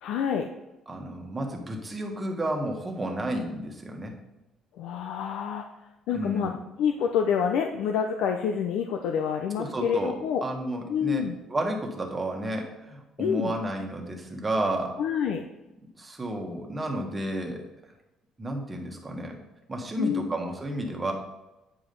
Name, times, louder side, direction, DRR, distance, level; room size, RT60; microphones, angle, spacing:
voice 1, 0.0-0.5 4.8-5.6 6.1-6.5 6.8-10.4 10.9-11.4 13.2-13.5 15.0-15.4 20.0-20.3, left 7 dB, 85° left, 4 dB, 0.7 m, -27 dB
voice 2, 0.9-4.1 6.1-6.5 9.6-15.0 15.9-17.6 18.4-19.4 19.7-21.1, right 1 dB, 15° right, 2 dB, 1.5 m, -32 dB
9.1 x 4.9 x 5.4 m, 0.97 s
cardioid pair, 140°, 0 cm